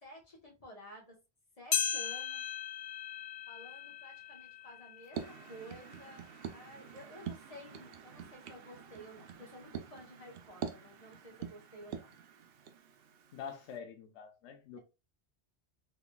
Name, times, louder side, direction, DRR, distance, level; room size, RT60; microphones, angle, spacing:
voice 1, 0.0-1.2 1.6-2.4 3.5-12.2, equal, 35° left, 1.2 m, -52 dB
sound 1, 1.7-6.4 6.9-7.0 7.8-7.9 8.8-8.9, left 9 dB, 55° left, 0.6 m, -38 dB
sound 2, 5.1-13.8, right 8 dB, 65° right, 0.7 m, -46 dB
voice 2, 13.3-14.8, left 7 dB, 85° left, 0.9 m, -46 dB
3.7 x 3.3 x 2.3 m
omnidirectional pair, 1.2 m